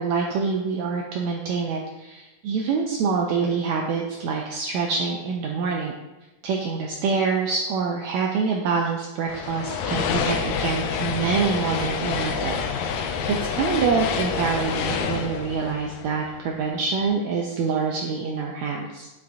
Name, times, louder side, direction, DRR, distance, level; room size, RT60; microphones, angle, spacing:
voice 1, 0.0-5.9 6.4-19.1, right 5 dB, 80° right, 0 dB, 1.7 m, -26 dB
sound 1, 9.3-16.7, left 6 dB, 80° left, 2.3 m, -27 dB
11.5 x 5.9 x 2.6 m, 1.0 s
omnidirectional pair, 3.8 m